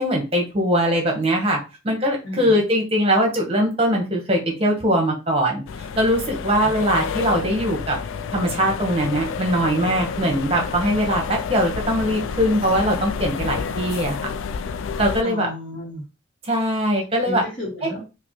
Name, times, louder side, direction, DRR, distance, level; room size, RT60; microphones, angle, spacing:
voice 1, 0.0-1.6 1.8-5.6 6.0-8.0 8.3-14.2 15.0-15.5 16.5-17.4 17.8-17.9, equal, 30° right, 1 dB, 1.1 m, -21 dB
voice 2, 2.2-2.6 6.6-6.7 15.2-16.1 17.2-18.1, left 1 dB, 40° left, -4 dB, 1.0 m, -33 dB
sound 1, 5.7-15.2, left 6 dB, 80° left, 0.3 m, -29 dB
5.0 x 2.1 x 3.0 m, 0.29 s
head